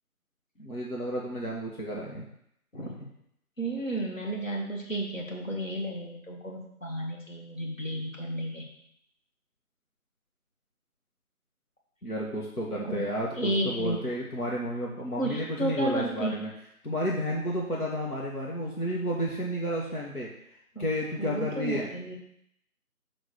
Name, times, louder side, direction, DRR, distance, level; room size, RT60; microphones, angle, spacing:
voice 1, 0.6-2.3 12.0-16.5 16.8-20.3 20.8-21.9, equal, 75° left, -3 dB, 1.8 m, -31 dB
voice 2, 3.6-8.7 12.7-13.0 13.4-14.1 15.2-16.3 20.8-20.9 21.2-22.2, right 1 dB, 60° left, -2 dB, 2.3 m, -32 dB
6.3 x 4.5 x 6.6 m, 0.74 s
figure-of-eight pair, 170°, 45 cm